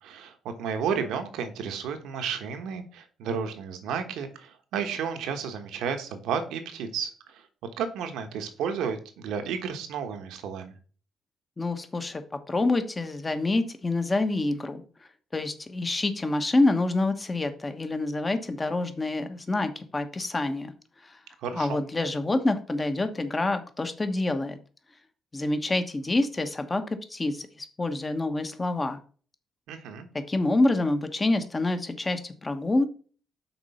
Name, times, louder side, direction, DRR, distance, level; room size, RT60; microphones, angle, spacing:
voice 1, 0.0-7.5 7.8-10.7 21.4-21.8 29.7-30.1, right 7 dB, 85° right, 7 dB, 1.2 m, -32 dB
voice 2, 11.6-12.2 12.5-14.8 15.3-20.7 21.0-21.2 21.5-24.6 25.3-26.8 27.1-29.0 30.3-32.9, left 2 dB, 25° left, 8 dB, 1.1 m, -27 dB
6.0 x 3.9 x 5.6 m, 0.39 s
cardioid pair, 90°, 0 cm